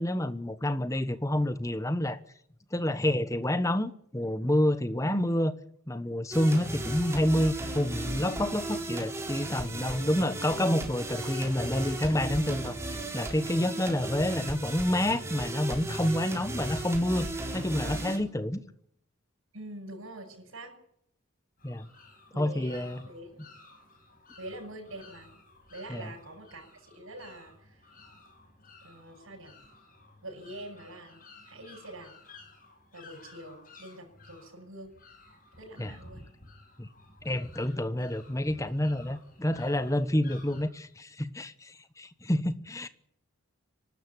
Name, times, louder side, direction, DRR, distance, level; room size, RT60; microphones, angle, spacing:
voice 1, 0.0-2.2 2.7-5.5 5.9-17.3 17.5-18.6 21.6-21.9 22.4-23.0 25.9-26.1 35.8-35.9 36.8-36.9 37.2-42.9, left 1 dB, 15° left, 1.1 m, -28 dB
sound 1, 6.3-18.2, right 1 dB, 15° right, 3.8 m, -36 dB
voice 2, 19.5-20.8 22.3-23.4 24.4-25.3 25.7-27.8 28.8-29.5 30.2-32.1 32.9-34.9 35.6-36.2, right 1 dB, 90° right, 7.9 m, -45 dB
sound 2, 21.6-40.7, left 3 dB, 45° left, 5.8 m, -54 dB
24.5 x 12.5 x 10.0 m
head